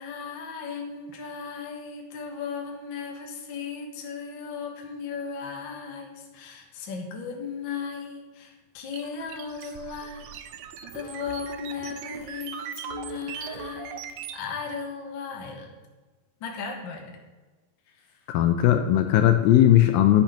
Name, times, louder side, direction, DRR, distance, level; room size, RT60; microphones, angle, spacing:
voice 1, 0.0-10.4 10.9-14.0 14.3-15.7 16.4-17.1 17.9-18.2, left 5 dB, 55° left, 1 dB, 1.3 m, -36 dB
sound 1, 8.9-14.4, right 8 dB, 80° right, 1.9 m, -39 dB
voice 2, 18.3-20.2, left 12 dB, 80° left, 7 dB, 2.2 m, -18 dB
10.0 x 6.5 x 5.8 m, 1.2 s
omnidirectional pair, 4.4 m